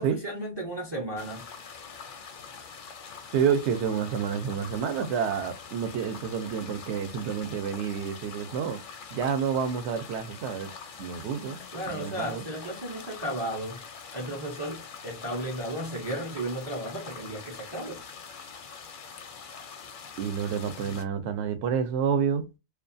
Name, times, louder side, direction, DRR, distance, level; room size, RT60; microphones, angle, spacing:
voice 1, 0.0-1.5 11.7-13.8 14.1-18.0 20.8-21.0, right 1 dB, 35° right, 0.4 m, -34 dB
sound 1, 1.2-21.0, left 6 dB, 55° left, 0.6 m, -44 dB
voice 2, 3.3-8.8 9.1-10.7 11.0-12.4 20.2-22.4, right 7 dB, 70° right, 0.8 m, -29 dB
2.4 x 2.2 x 2.5 m
omnidirectional pair, 1.3 m